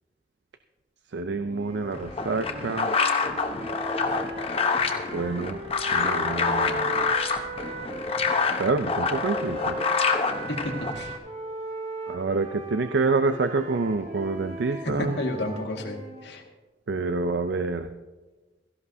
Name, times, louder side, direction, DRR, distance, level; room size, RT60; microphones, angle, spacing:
voice 1, 1.1-2.9 5.1-5.6 5.9-7.0 8.6-9.8 12.1-15.2 16.9-17.9, right 3 dB, 75° right, 9 dB, 0.5 m, -27 dB
sound 1, 1.4-8.4 9.1-16.3, right 1 dB, 35° right, 1.4 m, -38 dB
sound 2, 1.9-11.2, left 4 dB, 35° left, 0.9 m, -27 dB
voice 2, 10.5-11.2 14.8-16.4, left 1 dB, 75° left, 1 dB, 1.9 m, -31 dB
16.5 x 14.5 x 2.7 m, 1.2 s
head